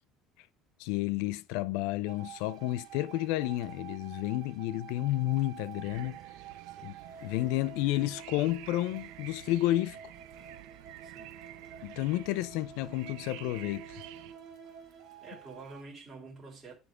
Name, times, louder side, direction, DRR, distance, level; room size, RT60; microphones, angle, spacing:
voice 1, 0.8-6.2 6.8-6.9 7.2-10.0 11.8-13.9, left 16 dB, 80° left, 0.5 m, -31 dB
sound 1, 2.1-15.8, right 8 dB, 45° right, 2.2 m, -49 dB
sound 2, 5.8-14.3, right 15 dB, 80° right, 0.5 m, -50 dB
voice 2, 6.7-7.0 11.0-11.4 15.2-16.7, right 3 dB, 15° right, 3.2 m, -48 dB
9.8 x 3.5 x 4.9 m
cardioid pair, 165°, 0 cm